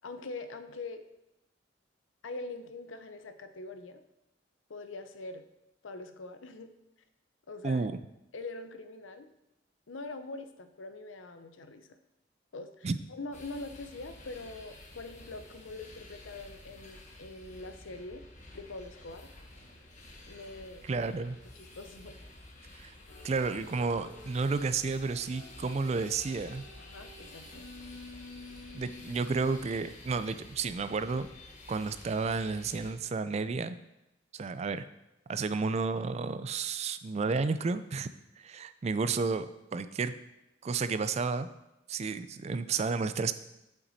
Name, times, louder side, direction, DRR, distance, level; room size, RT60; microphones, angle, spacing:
voice 1, 0.0-1.0 2.2-4.0 4.7-5.4 5.8-6.7 7.5-7.9 8.3-9.3 9.9-12.0 12.5-18.2 18.5-19.3 20.3-21.2 21.5-22.2 26.8-27.7, left 3 dB, 90° left, 9 dB, 0.7 m, -43 dB
voice 2, 7.6-8.0 12.8-13.0 20.8-21.4 22.8-22.9 23.2-26.7 28.7-31.3 31.7-33.8 34.3-34.8 35.3-38.1 38.4-40.1 40.6-41.5 41.9-43.3, right 4 dB, 35° right, 13 dB, 0.3 m, -31 dB
sound 1, 13.3-32.9, left 2 dB, 40° left, 1.2 m, -51 dB
sound 2, 23.1-29.6, left 3 dB, 70° left, 2.5 m, -51 dB
7.9 x 6.0 x 4.1 m, 0.90 s
head